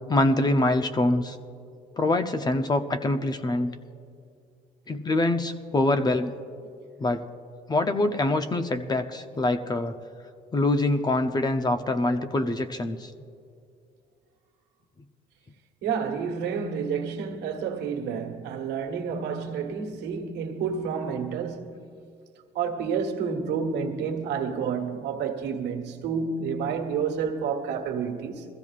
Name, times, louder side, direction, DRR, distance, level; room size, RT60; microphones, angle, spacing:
voice 1, 0.1-1.4 2.0-3.7 4.9-6.3 7.0-7.3 7.7-10.0 10.5-13.1, left 2 dB, 25° left, 0.6 m, -24 dB
voice 2, 15.8-21.8 22.5-28.5, right 6 dB, 80° right, 1.6 m, -29 dB
22.0 x 15.0 x 2.5 m
cardioid pair, 110°, 17 cm